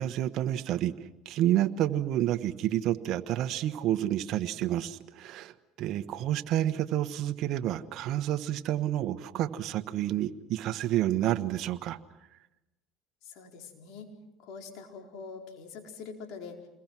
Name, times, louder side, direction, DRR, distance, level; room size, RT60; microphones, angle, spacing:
voice 1, 0.0-12.0, right 12 dB, 60° right, 9 dB, 1.3 m, -29 dB
voice 2, 13.2-14.1 14.4-16.6, left 5 dB, 65° left, 3 dB, 4.5 m, -44 dB
28.5 x 22.0 x 6.2 m, 0.97 s
supercardioid pair, 95°, 0 cm